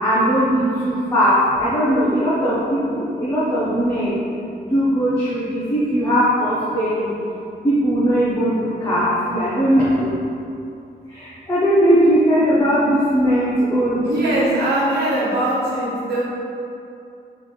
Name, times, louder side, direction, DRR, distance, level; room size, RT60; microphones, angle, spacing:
voice 1, 0.0-4.2 4.6-7.1 7.6-10.1 11.1-14.5, equal, 20° left, -11 dB, 0.8 m, -19 dB
voice 2, 14.0-16.2, right 1 dB, 90° right, -7 dB, 1.3 m, -21 dB
3.9 x 3.3 x 3.9 m, 2.6 s
wide cardioid pair, 175°, 17 cm